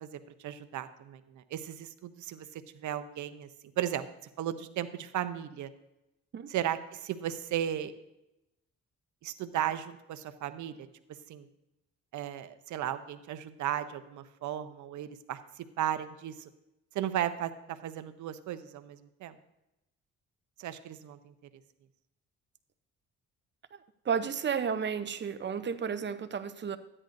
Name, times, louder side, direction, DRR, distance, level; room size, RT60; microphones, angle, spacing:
voice 1, 0.0-3.5 3.8-4.1 4.4-5.7 6.5-7.9 9.2-10.9 11.3-11.5 12.1-16.5 16.9-19.4 20.6-21.3, right 11 dB, 75° right, 0.8 m, -35 dB
voice 2, 24.0-26.8, right 6 dB, 35° right, 0.7 m, -32 dB
13.0 x 9.8 x 2.6 m
cardioid pair, 90°, 30 cm